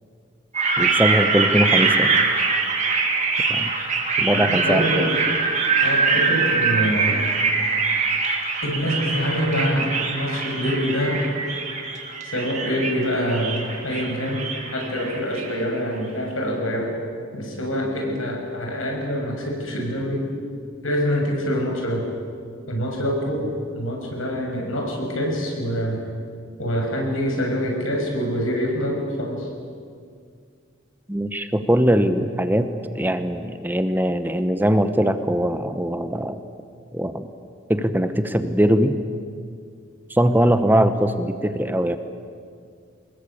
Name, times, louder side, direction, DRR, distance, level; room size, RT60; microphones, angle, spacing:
sound 1, 0.5-15.6, right 4 dB, 35° right, 3.1 m, -23 dB
voice 1, 0.8-2.2 3.5-3.7 4.2-5.1 31.1-32.7 32.9-36.4 36.9-37.3 37.7-39.0 40.1-42.0, equal, 10° right, 10 dB, 0.9 m, -21 dB
voice 2, 4.3-5.1 5.8-7.2 8.6-11.2 12.2-14.5 14.7-16.9 17.3-20.2 20.8-22.0 22.7-26.0 26.6-29.5, equal, 85° left, 1 dB, 6.6 m, -25 dB
25.0 x 20.5 x 8.6 m, 2.2 s
head